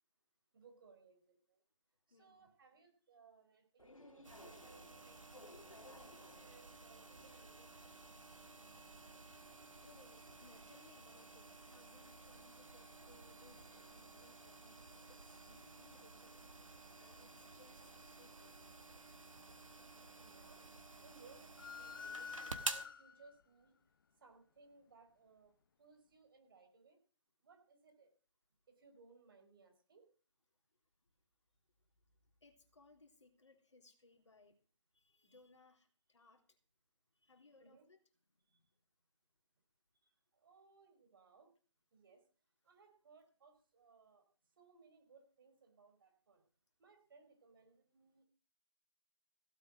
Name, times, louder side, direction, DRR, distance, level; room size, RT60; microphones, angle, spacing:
voice 1, 0.5-1.6 2.1-5.2 5.7-8.1 20.2-20.7 21.0-23.7 24.2-25.5 25.8-27.0 27.4-28.1 28.7-30.0 36.2-36.3 37.6-37.9 38.5-38.6 40.0-41.5 41.9-42.2 42.6-44.3 44.6-46.4 46.8-48.2, right 4 dB, 45° right, 5 dB, 4.5 m, -65 dB
voice 2, 2.1-2.5 9.8-16.4 17.0-18.7 32.4-34.6 34.9-36.6 37.2-38.0, left 3 dB, 60° left, 5 dB, 3.4 m, -66 dB
sound 1, 3.8-10.4, left 1 dB, 85° left, 2.4 m, -62 dB
Neon Light buzz - cleaned, 4.2-22.9, right 3 dB, 80° right, 1.8 m, -52 dB
sound 2, 21.6-23.4, left 6 dB, 40° left, 0.9 m, -48 dB
16.5 x 8.4 x 6.2 m, 0.39 s
figure-of-eight pair, 145°, 17 cm